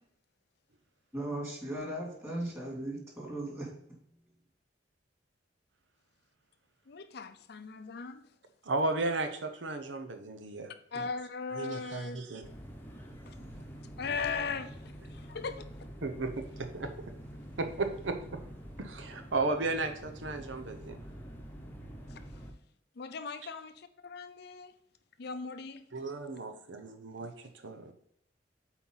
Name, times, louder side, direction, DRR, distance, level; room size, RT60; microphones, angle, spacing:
voice 1, 1.1-3.7, right 1 dB, 15° right, -3 dB, 2.6 m, -37 dB
voice 2, 6.9-8.2 10.9-12.2 13.3-13.4 14.0-15.6 22.1-22.2 23.0-24.7 25.2-25.8, left 5 dB, 60° left, 10 dB, 0.5 m, -38 dB
voice 3, 8.6-11.1 11.5-12.4 16.0-16.9 17.6-18.4 18.8-21.0 25.9-27.9, right 3 dB, 85° right, 7 dB, 0.8 m, -35 dB
sound 1, 12.4-22.5, equal, 10° left, 0.9 m, -47 dB
8.1 x 4.5 x 3.9 m, 0.71 s
head